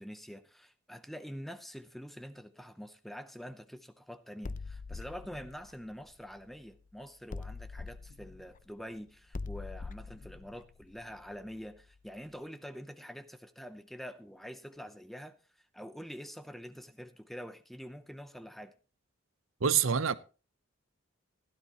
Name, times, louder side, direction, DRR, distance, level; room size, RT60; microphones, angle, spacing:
voice 1, 0.0-18.7, equal, ahead, 0.7 m, -46 dB
sound 1, 4.4-6.8 7.3-12.0, left 3 dB, 40° left, 0.6 m, -44 dB
voice 2, 19.6-20.2, right 7 dB, 85° right, 0.7 m, -26 dB
16.0 x 11.5 x 3.0 m
head